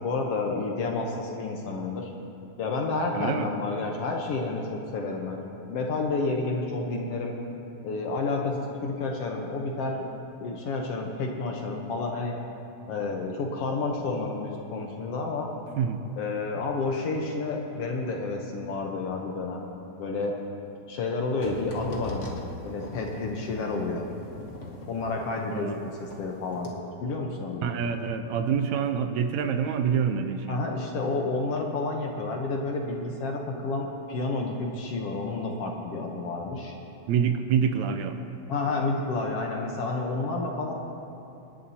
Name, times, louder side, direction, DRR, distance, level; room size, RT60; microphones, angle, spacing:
voice 1, 0.0-2.1 2.6-7.3 7.8-10.1 10.4-12.4 12.9-15.5 16.2-19.7 20.0-20.3 20.9-22.4 22.6-24.1 24.9-26.7 27.0-27.9 30.5-36.7 38.5-40.7, left 3 dB, 65° left, 1 dB, 1.7 m, -30 dB
voice 2, 3.1-3.5 15.8-16.0 25.5-25.8 27.6-30.6 37.1-38.2, right 7 dB, 80° right, 7 dB, 1.9 m, -26 dB
sound 1, 21.4-26.3 26.5-26.7, equal, 35° left, 1.2 m, -40 dB
26.0 x 11.0 x 2.8 m, 2.8 s
omnidirectional pair, 3.4 m